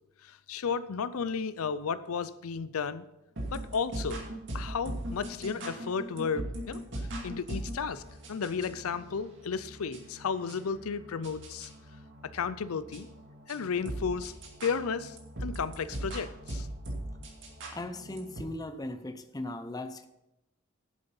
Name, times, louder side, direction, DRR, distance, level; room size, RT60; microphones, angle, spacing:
voice 1, 0.2-3.1 3.5-4.2 4.5-6.8 7.2-8.0 8.3-11.7 12.2-13.1 13.5-14.3 14.6-16.7, left 5 dB, 80° left, 15 dB, 0.5 m, -33 dB
sound 1, 3.4-18.4, right 1 dB, 55° right, 2.4 m, -40 dB
voice 2, 17.7-20.1, left 1 dB, 15° left, 9 dB, 0.6 m, -38 dB
10.5 x 7.8 x 5.4 m, 0.91 s
head